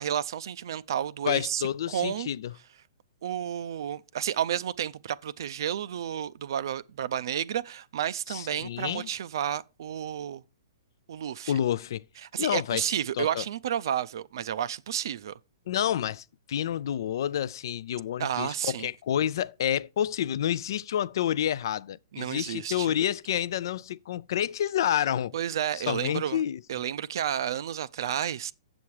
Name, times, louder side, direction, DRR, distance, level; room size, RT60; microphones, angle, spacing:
voice 1, 0.0-1.6 1.9-2.3 3.2-10.4 11.1-11.5 12.2-15.4 18.2-18.9 22.1-22.9 25.3-26.4 26.7-28.5, right 10 dB, 65° right, 0.4 m, -31 dB
voice 2, 1.3-2.5 8.3-9.1 11.5-12.0 12.4-13.4 15.7-25.3 25.7-26.6, left 10 dB, 65° left, 0.4 m, -29 dB
7.6 x 7.1 x 4.7 m
hypercardioid pair, 140°, 2 cm